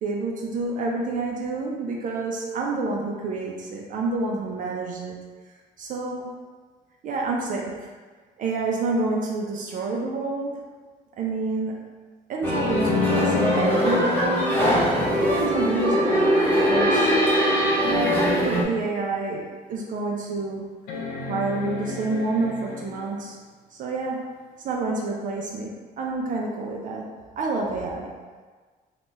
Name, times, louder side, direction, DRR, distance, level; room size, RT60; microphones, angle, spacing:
voice 1, 0.0-5.2 5.8-6.4 7.0-7.9 8.4-10.7 11.2-11.8 12.3-14.6 15.1-17.1 17.8-20.7 21.3-23.4 23.7-24.3 24.6-27.1 27.4-28.1, right 3 dB, 50° right, -1 dB, 0.4 m, -28 dB
sound 1, 12.4-18.6, equal, 10° left, 0.5 m, -21 dB
sound 2, 18.7-18.8 19.4-19.5 20.9-23.4 25.1-25.2, left 3 dB, 75° left, 0.5 m, -35 dB
2.9 x 2.2 x 3.1 m, 1.4 s
cardioid pair, 110°, 17 cm